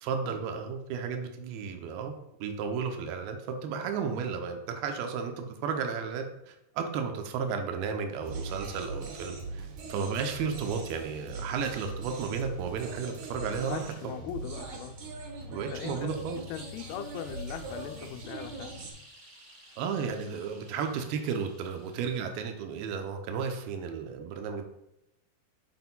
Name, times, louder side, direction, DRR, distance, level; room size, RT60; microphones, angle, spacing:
voice 1, 0.0-2.1 2.4-13.9 15.5-16.4 19.8-24.6, right 6 dB, 80° right, 5 dB, 2.5 m, -33 dB
sound 1, 8.2-18.9, right 3 dB, 65° right, 2.2 m, -41 dB
voice 2, 13.5-15.2 15.5-16.2 16.5-18.7, left 9 dB, 85° left, 6 dB, 2.4 m, -40 dB
sound 2, 16.1-22.5, right 1 dB, 25° right, 1.3 m, -54 dB
10.5 x 4.3 x 2.2 m, 0.85 s
omnidirectional pair, 4.5 m